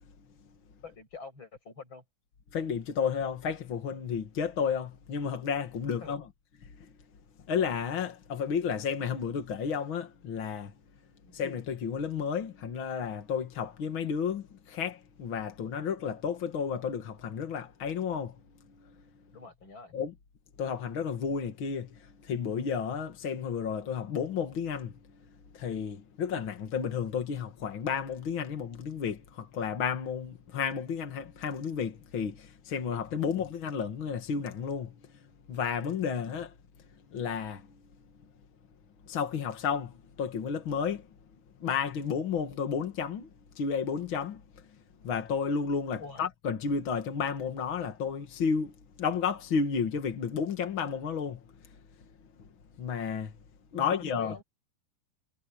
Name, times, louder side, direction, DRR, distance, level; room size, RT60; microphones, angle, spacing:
voice 1, 0.8-2.0 6.0-6.2 11.2-11.4 19.3-19.9 46.0-46.2 53.7-54.4, left 4 dB, 25° left, 8.0 m, -46 dB
voice 2, 2.5-6.3 6.8-6.9 7.5-10.7 11.3-18.3 18.8-18.9 19.9-20.1 20.6-24.9 25.5-35.0 35.5-36.5 37.1-37.7 39.1-41.1 41.6-43.3 43.5-44.4 45.0-48.7 49.0-51.4 52.8-53.3 53.7-54.4, left 6 dB, 55° left, 1.4 m, -32 dB
omnidirectional pair, 5.0 m